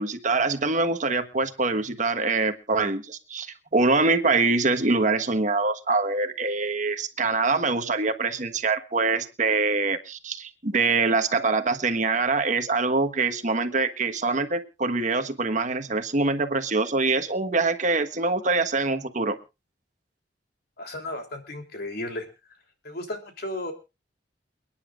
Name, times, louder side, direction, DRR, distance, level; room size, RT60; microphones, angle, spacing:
voice 1, 0.0-19.4, right 3 dB, 45° right, 7 dB, 1.4 m, -24 dB
voice 2, 20.8-22.3 22.8-23.7, left 1 dB, 60° left, 4 dB, 3.3 m, -34 dB
29.0 x 10.0 x 2.5 m, 0.29 s
head